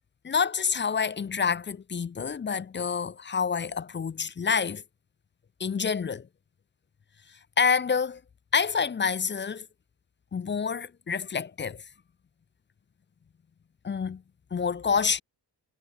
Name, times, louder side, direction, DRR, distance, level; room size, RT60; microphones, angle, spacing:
voice 1, 0.2-4.8 5.6-6.3 7.6-8.2 8.5-9.7 10.3-11.8 13.8-14.2 14.5-15.2, left 6 dB, 25° left, 0.6 m, -27 dB
wide cardioid pair, 165°, 42 cm